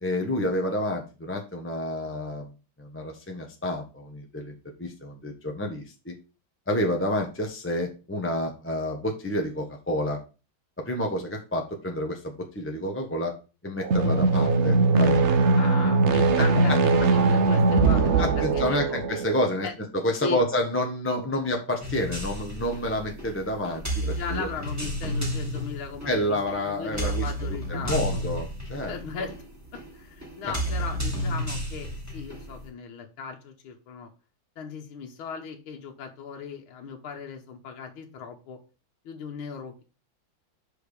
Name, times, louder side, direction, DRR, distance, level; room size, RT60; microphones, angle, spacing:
voice 1, 0.0-2.5 2.8-6.1 6.7-10.2 10.8-13.3 13.6-15.2 16.7-16.8 18.2-19.7 19.9-24.5 26.0-29.3, left 1 dB, 10° left, 2 dB, 0.9 m, -29 dB
sound 1, 13.8-19.4, right 3 dB, 55° right, 0.8 m, -21 dB
voice 2, 15.6-19.0 19.6-19.7 20.2-20.4 24.0-26.4 26.6-28.2 28.9-29.3 29.9-34.1 34.6-38.6 39.1-39.8, left 6 dB, 80° left, 2 dB, 1.9 m, -37 dB
sound 2, 21.8-32.7, equal, 10° right, 2.3 m, -32 dB
5.8 x 5.1 x 6.6 m, 0.32 s
omnidirectional pair, 2.3 m